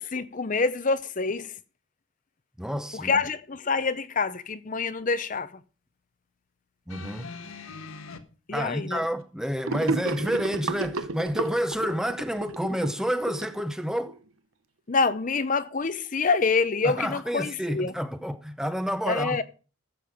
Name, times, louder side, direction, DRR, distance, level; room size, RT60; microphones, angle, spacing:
voice 1, 0.0-1.5 2.9-5.5 8.5-9.0 14.9-17.9 19.1-19.4, left 4 dB, 40° left, 0.6 m, -26 dB
voice 2, 2.6-3.1 6.9-7.3 8.5-14.2 16.8-19.4, equal, 5° right, 0.6 m, -29 dB
sound 1, 6.9-8.2 9.2-9.3, left 4 dB, 80° left, 1.4 m, -41 dB
Gurgling / Sink (filling or washing), 9.7-14.1, right 3 dB, 75° right, 0.8 m, -32 dB
14.0 x 7.5 x 5.1 m
head